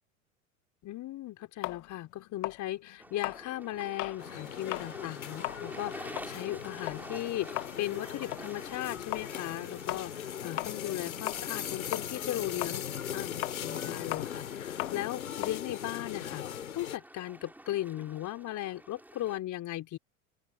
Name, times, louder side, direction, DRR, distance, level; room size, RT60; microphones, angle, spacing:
voice 1, 0.8-16.4 16.7-20.0, left 14 dB, 45° left, 4.6 m, -37 dB
sound 1, 1.6-4.2 4.6-4.9 5.3-11.7 11.9-16.7, left 24 dB, 65° left, 2.5 m, -39 dB
sound 2, 3.0-19.4, right 1 dB, 5° right, 5.0 m, -50 dB
sound 3, 4.2-17.0, left 9 dB, 85° left, 4.6 m, -39 dB
open air
hypercardioid pair, 80°, 41 cm